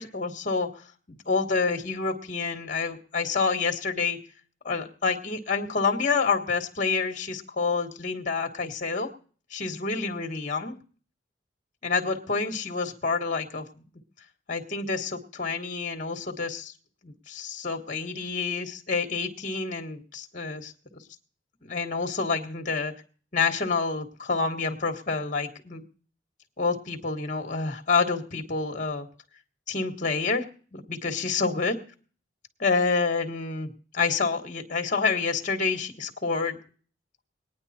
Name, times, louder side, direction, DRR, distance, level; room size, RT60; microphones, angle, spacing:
voice 1, 0.0-4.2 4.6-9.1 9.5-10.7 11.8-13.6 14.5-16.7 17.0-21.0 21.6-22.9 23.3-25.8 26.6-29.1 29.7-30.4 30.7-31.8 32.6-36.6, left 4 dB, 45° left, 4 dB, 1.5 m, -28 dB
20.5 x 9.5 x 4.2 m, 0.42 s
head